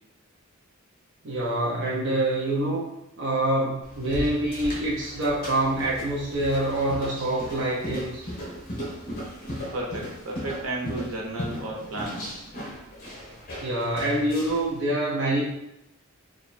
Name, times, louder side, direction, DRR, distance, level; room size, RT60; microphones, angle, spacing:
voice 1, 1.2-2.9 3.2-8.2 13.6-15.4, right 1 dB, 60° right, -5 dB, 0.7 m, -26 dB
sound 1, 3.8-14.7, equal, 45° left, 0.9 m, -37 dB
voice 2, 9.7-12.3, right 2 dB, 90° right, -2 dB, 0.9 m, -33 dB
2.9 x 2.4 x 4.2 m, 0.85 s
head